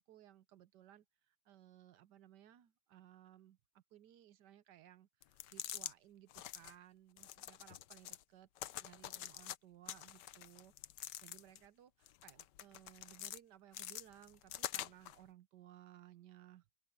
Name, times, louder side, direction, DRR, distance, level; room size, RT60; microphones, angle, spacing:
voice 1, 0.0-8.5 8.7-10.7 11.2-16.7, right 12 dB, 80° right, 1.5 m, -61 dB
sound 1, 5.2-5.9 6.3-6.7 7.2-8.2 8.6-9.6 9.9-11.7 12.1-13.4 13.7-15.2, left 12 dB, 90° left, 1.4 m, -46 dB
open air
omnidirectional pair, 1.8 m